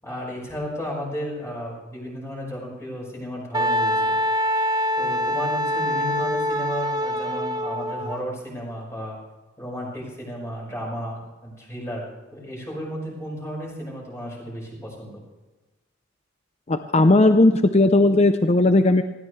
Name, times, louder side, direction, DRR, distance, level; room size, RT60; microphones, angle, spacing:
voice 1, 0.0-4.2 5.0-9.2 9.6-15.2, equal, 15° left, -3 dB, 5.9 m, -34 dB
Wind instrument woodwind instrument, 3.5-8.2, equal, 20° right, 1.1 m, -24 dB
voice 2, 16.7-19.0, left 2 dB, 35° left, 9 dB, 0.6 m, -17 dB
19.5 x 17.0 x 3.3 m, 1.2 s
head